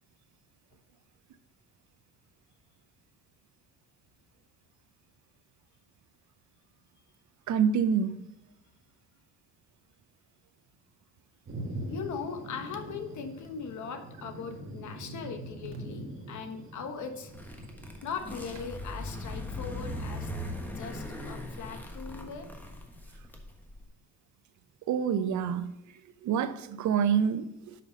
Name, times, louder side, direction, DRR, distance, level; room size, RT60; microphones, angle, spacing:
voice 1, 7.5-8.2 24.9-25.7 26.2-27.7, right 7 dB, 70° right, 0.6 m, -27 dB
Thunder, 11.5-18.7, right 1 dB, 45° right, 1.6 m, -43 dB
voice 2, 11.9-17.3 18.0-20.3 20.8-22.5, left 6 dB, 70° left, 1.2 m, -39 dB
sound 1, 17.3-23.8, left 1 dB, 5° left, 1.3 m, -39 dB
6.3 x 5.9 x 5.0 m
cardioid pair, 90°, 30 cm